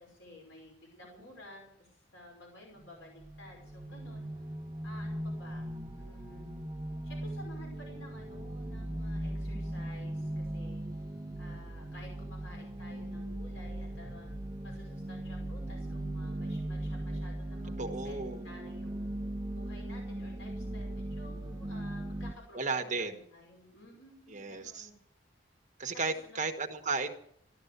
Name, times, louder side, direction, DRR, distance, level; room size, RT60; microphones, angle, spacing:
voice 1, 0.0-4.3 4.8-5.7 5.9-6.6 7.0-10.9 11.4-14.4 14.6-18.9 19.5-25.0 26.1-26.4, left 1 dB, 70° left, -1 dB, 5.6 m, -53 dB
sound 1, 2.8-22.3, right 1 dB, 20° right, 0.8 m, -39 dB
voice 2, 17.8-18.4 22.5-23.2 24.3-24.9 25.8-27.1, right 4 dB, 35° right, 4 dB, 1.4 m, -34 dB
15.0 x 12.5 x 6.8 m, 0.67 s
head